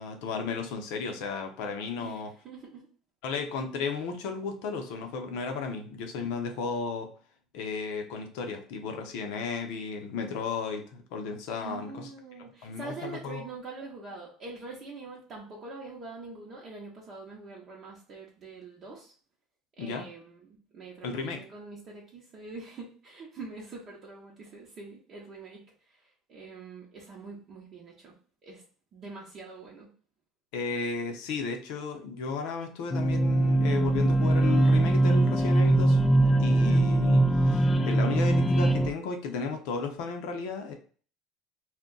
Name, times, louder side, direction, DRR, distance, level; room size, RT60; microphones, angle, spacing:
voice 1, 0.0-2.3 3.2-7.1 7.5-12.1 12.6-13.5 19.8-20.1 21.0-21.4 30.5-36.0 36.4-40.7, left 4 dB, 75° left, 5 dB, 0.6 m, -34 dB
voice 2, 2.0-2.9 11.6-19.1 19.8-28.1 28.4-28.6 28.9-29.9, right 3 dB, 45° right, -3 dB, 0.7 m, -44 dB
sound 1, 32.9-38.9, right 1 dB, 20° left, 0.4 m, -22 dB
2.4 x 2.1 x 3.8 m, 0.42 s
supercardioid pair, 95°, 0 cm